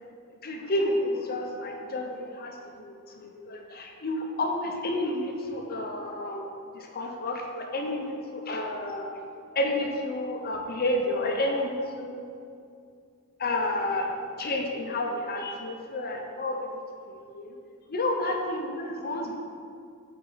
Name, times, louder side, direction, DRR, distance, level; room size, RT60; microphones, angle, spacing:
voice 1, 0.4-2.6 2.8-6.5 6.7-9.1 9.6-12.3 13.4-14.1 14.4-16.7 17.1-17.5 17.9-19.4, left 1 dB, 45° left, 2 dB, 0.7 m, -30 dB
8.5 x 4.2 x 4.0 m, 2.3 s
head